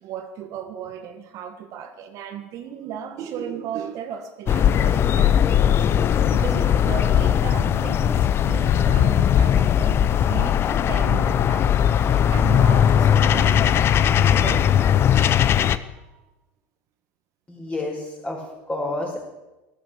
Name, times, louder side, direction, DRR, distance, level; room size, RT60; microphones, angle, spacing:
voice 1, 0.0-14.7 15.7-16.3, right 8 dB, 55° right, 6 dB, 1.5 m, -36 dB
sound 1, 4.5-15.8, left 9 dB, 40° left, 0.6 m, -19 dB
voice 2, 17.5-19.2, left 2 dB, 15° left, 0 dB, 4.8 m, -30 dB
13.0 x 12.0 x 6.9 m, 1.0 s
supercardioid pair, 105°, 7 cm